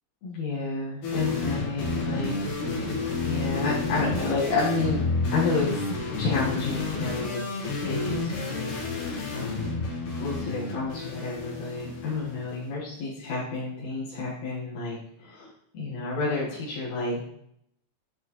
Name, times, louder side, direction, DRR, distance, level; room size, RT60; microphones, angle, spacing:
voice 1, 0.2-2.4 3.2-5.0 5.3-5.7 6.2-7.4 7.7-9.7 10.2-17.2, left 3 dB, 70° left, -8 dB, 2.9 m, -30 dB
sound 1, 1.0-12.5, left 3 dB, 90° left, 3.3 m, -30 dB
sound 2, 1.6-7.4, right 3 dB, 65° right, 2.6 m, -49 dB
10.0 x 6.4 x 3.1 m, 0.73 s
omnidirectional pair, 3.4 m